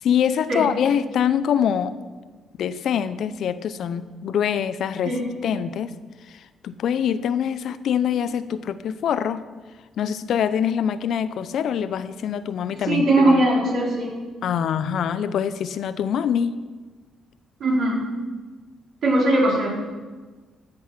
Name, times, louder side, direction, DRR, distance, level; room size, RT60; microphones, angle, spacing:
voice 1, 0.0-1.9 2.6-5.2 5.4-5.9 6.6-9.4 10.0-13.4 14.4-16.6, left 8 dB, 65° left, 13 dB, 0.6 m, -24 dB
voice 2, 12.9-14.1 17.6-18.0 19.0-19.7, right 1 dB, 55° right, -4 dB, 4.5 m, -20 dB
14.5 x 7.8 x 5.9 m, 1.3 s
cardioid pair, 115°, 0 cm